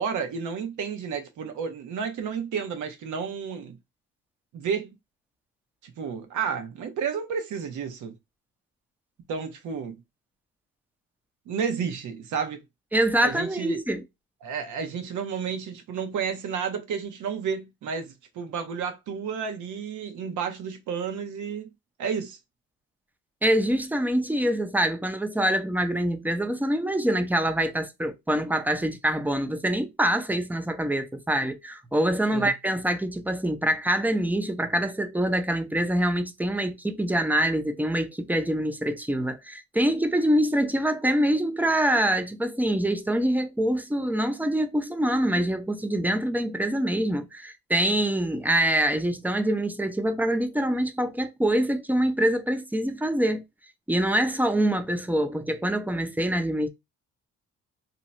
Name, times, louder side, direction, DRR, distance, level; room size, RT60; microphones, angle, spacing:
voice 1, 0.0-3.8 4.5-5.0 5.8-8.2 9.3-10.0 11.5-12.6 13.2-13.8 14.4-21.7 22.0-22.4 32.3-32.5, right 6 dB, 75° right, 0.9 m, -31 dB
voice 2, 12.9-14.0 23.4-53.4 53.9-56.7, right 1 dB, 5° right, 0.5 m, -25 dB
2.8 x 2.3 x 4.1 m
cardioid pair, 90°, 30 cm